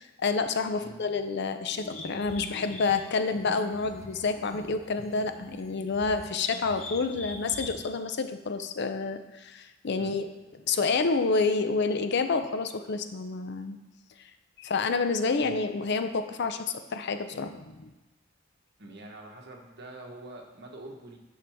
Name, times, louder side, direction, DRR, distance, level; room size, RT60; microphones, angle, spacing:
voice 1, 0.0-10.3 10.7-13.8 14.6-17.9, left 4 dB, 60° left, 9 dB, 0.5 m, -29 dB
sound 1, 1.8-7.9, left 2 dB, 35° left, 0.9 m, -44 dB
voice 2, 18.8-21.2, right 2 dB, 60° right, 1 dB, 1.2 m, -45 dB
9.4 x 5.6 x 3.5 m, 1.1 s
head